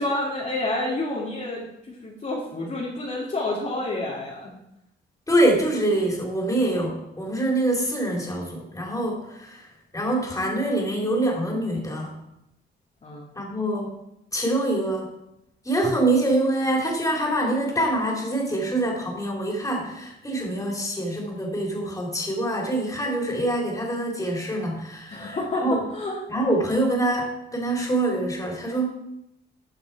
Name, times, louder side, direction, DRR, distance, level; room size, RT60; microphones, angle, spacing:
voice 1, 0.0-4.5 13.0-13.3 25.1-25.6 25.9-26.2, left 2 dB, 35° left, -5 dB, 2.2 m, -29 dB
voice 2, 5.3-9.7 9.9-12.1 13.3-13.9 14.3-15.1 15.6-25.8 26.3-28.9, right 1 dB, 15° left, -1 dB, 3.1 m, -25 dB
12.5 x 5.3 x 4.6 m, 0.84 s
cardioid pair, 90°, 20 cm